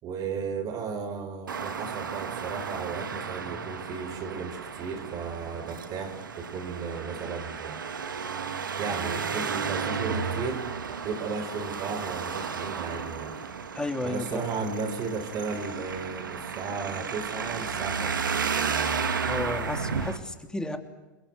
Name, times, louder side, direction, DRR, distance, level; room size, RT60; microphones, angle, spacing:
voice 1, 0.0-7.8 8.8-10.7 11.0-13.4 14.0-18.3, right 5 dB, 40° right, 7 dB, 4.8 m, -34 dB
Traffic noise roadway noise, 1.5-20.2, right 6 dB, 90° right, 2.2 m, -33 dB
voice 2, 13.7-14.4 19.2-20.8, left 1 dB, 5° left, 6 dB, 3.2 m, -32 dB
28.5 x 22.0 x 8.1 m, 1.1 s
hypercardioid pair, 100°, 11 cm